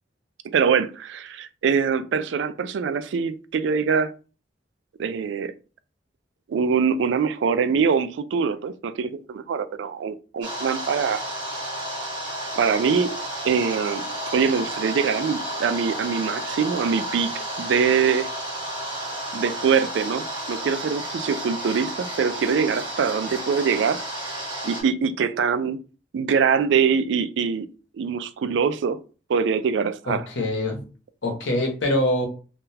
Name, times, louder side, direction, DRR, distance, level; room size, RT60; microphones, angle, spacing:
voice 1, 0.4-4.1 5.0-5.5 6.5-11.2 12.6-13.1 13.4-14.0 14.3-18.3 19.3-24.0 24.6-25.8 26.1-27.7 27.9-29.0 29.3-30.2, right 6 dB, 70° right, 0.3 m, -23 dB
sound 1, 10.4-24.8, right 1 dB, 25° right, 1.3 m, -32 dB
voice 2, 30.1-30.9 31.2-32.3, left 1 dB, 75° left, 0.9 m, -24 dB
3.7 x 2.3 x 2.7 m
head